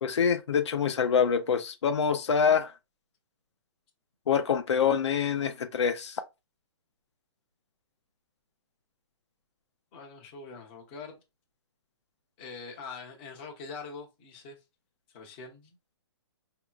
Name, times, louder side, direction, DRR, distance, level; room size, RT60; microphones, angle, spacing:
voice 1, 0.0-2.7 4.3-6.2, left 7 dB, 80° left, 0.7 m, -25 dB
voice 2, 9.9-11.2 12.4-14.6 15.1-15.8, left 4 dB, 20° left, 0.9 m, -43 dB
4.8 x 2.8 x 2.4 m
hypercardioid pair, 175°, 15 cm